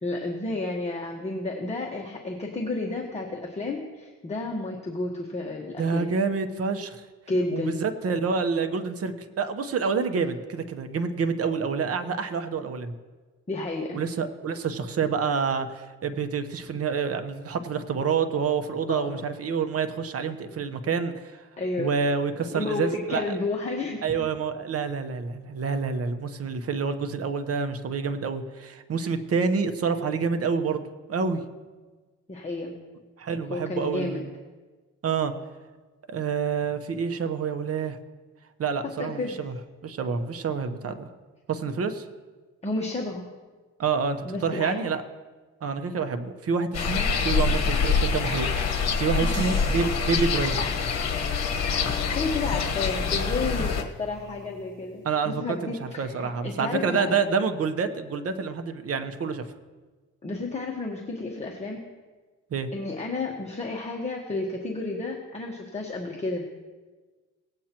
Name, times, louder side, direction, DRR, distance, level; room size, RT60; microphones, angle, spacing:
voice 1, 0.0-6.1 7.3-7.8 13.5-14.0 18.9-19.2 21.6-21.9 22.3-24.3 29.0-29.1 32.3-32.8 33.5-34.3 39.0-39.4 42.6-43.3 44.2-44.8 49.2-49.6 52.1-57.2 60.2-61.8 62.7-66.4, left 2 dB, 20° left, 0 dB, 1.3 m, -31 dB
voice 2, 5.8-7.0 7.5-9.1 9.4-12.9 13.9-21.4 21.8-23.2 24.0-30.8 31.1-31.4 33.2-34.3 35.0-35.3 36.1-38.0 38.6-39.5 39.8-41.1 41.5-42.0 43.8-45.0 45.6-50.8 55.0-59.4 62.5-62.7, right 5 dB, 50° right, 8 dB, 1.0 m, -28 dB
sound 1, 46.7-53.8, left 5 dB, 60° left, 1.3 m, -25 dB
sound 2, 49.3-55.1, right 3 dB, 80° right, 1.4 m, -45 dB
18.5 x 8.7 x 3.0 m, 1.3 s
cardioid pair, 90°, 30 cm